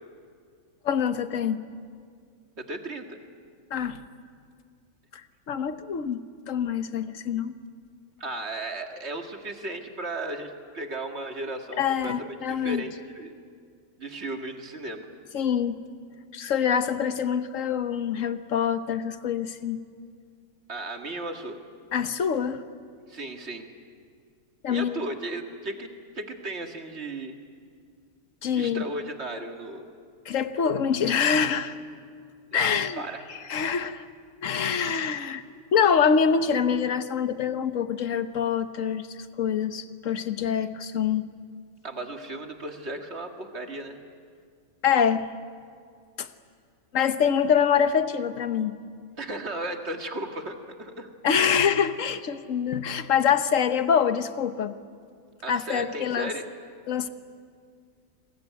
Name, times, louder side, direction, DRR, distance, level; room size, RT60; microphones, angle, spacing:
voice 1, 0.8-1.7 3.7-4.0 5.1-5.2 5.5-6.2 6.5-7.5 11.8-12.8 15.3-15.8 16.3-19.8 21.9-22.6 24.6-25.0 28.4-28.8 30.2-31.8 32.5-33.0 33.3-34.1 34.4-35.4 35.7-41.3 44.8-45.3 46.2-46.3 46.9-48.8 51.2-54.8 55.5-56.3 56.9-57.1, left 7 dB, 60° left, 10 dB, 1.4 m, -25 dB
voice 2, 2.6-3.2 8.2-13.3 14.0-15.1 20.7-21.6 23.1-23.6 24.7-25.9 26.2-27.4 28.5-29.9 32.5-33.2 41.8-44.0 49.2-51.1 55.4-56.5, right 2 dB, 45° right, 4 dB, 2.3 m, -35 dB
28.5 x 21.5 x 9.4 m, 2.2 s
omnidirectional pair, 1.6 m